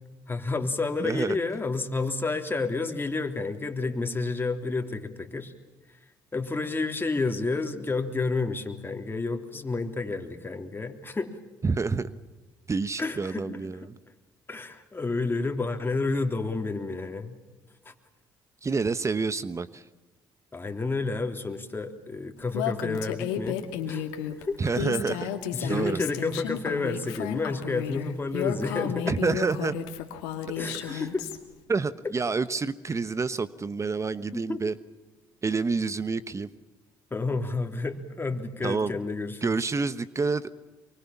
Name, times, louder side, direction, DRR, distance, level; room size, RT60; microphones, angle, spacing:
voice 1, 0.3-5.5 6.3-11.4 13.0-13.6 14.5-17.4 17.9-18.0 20.5-23.6 23.9-24.1 24.4-24.6 25.5-29.2 30.6-31.3 34.3-34.6 37.1-39.7, left 3 dB, 25° left, 5 dB, 3.5 m, -30 dB
voice 2, 1.0-1.4 11.6-12.2 12.7-13.9 18.6-19.8 24.6-25.3 25.7-26.0 29.1-29.7 30.9-31.0 31.7-34.7 35.4-36.5 38.6-38.9 39.4-40.5, right 4 dB, 30° right, 15 dB, 1.1 m, -28 dB
Female speech woman speaking, 22.5-31.4, left 9 dB, 90° left, 2.2 m, -32 dB
24.5 x 24.0 x 7.3 m, 1.2 s
supercardioid pair, 60°, 9 cm